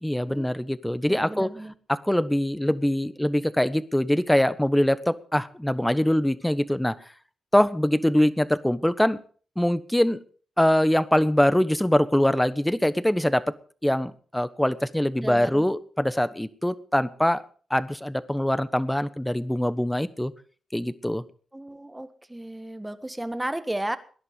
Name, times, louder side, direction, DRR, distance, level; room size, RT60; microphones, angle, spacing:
voice 1, 0.0-1.5 1.9-7.0 7.5-9.2 9.6-10.2 10.6-13.5 13.8-17.4 17.7-20.3 20.7-21.2, left 1 dB, 5° left, 14 dB, 1.2 m, -23 dB
voice 2, 1.1-1.7 15.2-15.7 21.5-24.0, right 1 dB, 10° right, 10 dB, 1.7 m, -34 dB
19.5 x 11.0 x 5.3 m, 0.42 s
cardioid pair, 75°, 0 cm